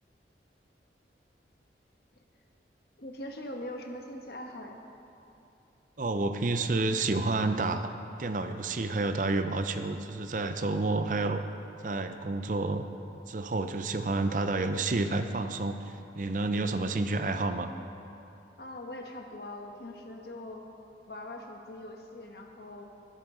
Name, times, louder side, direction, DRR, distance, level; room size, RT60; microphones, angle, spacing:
voice 1, 3.0-4.8 18.6-20.6 21.1-22.9, left 1 dB, 60° left, 2 dB, 1.3 m, -42 dB
voice 2, 6.0-7.9 8.2-11.4 11.8-12.9 13.3-17.7, right 3 dB, 45° right, 8 dB, 0.6 m, -29 dB
20.5 x 9.1 x 3.8 m, 2.9 s
head